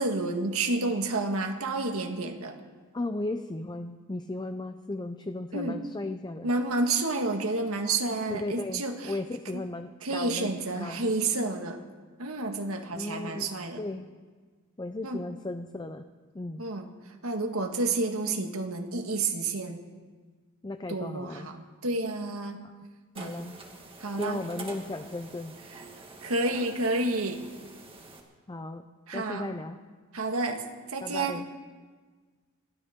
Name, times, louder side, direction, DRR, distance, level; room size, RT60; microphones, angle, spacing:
voice 1, 0.0-2.6 5.5-5.8 6.4-9.1 9.5-9.6 10.0-11.8 12.2-13.8 15.0-15.2 16.6-16.9 17.2-19.8 20.9-22.6 23.2-23.5 24.0-24.4 26.2-27.4 29.1-29.5 30.1-30.6 30.9-31.4, right 2 dB, 85° right, 4 dB, 1.7 m, -30 dB
voice 2, 2.9-6.5 8.3-10.5 10.8-11.1 12.9-13.5 13.8-14.1 14.8-16.0 16.3-16.6 20.6-21.5 23.2-23.5 24.2-25.5 28.5-28.8 29.1-29.8 31.0-31.5, left 2 dB, 20° left, 8 dB, 0.6 m, -35 dB
sound 1, 23.1-28.2, right 3 dB, 25° right, 2.1 m, -46 dB
29.0 x 12.5 x 3.7 m, 1.4 s
head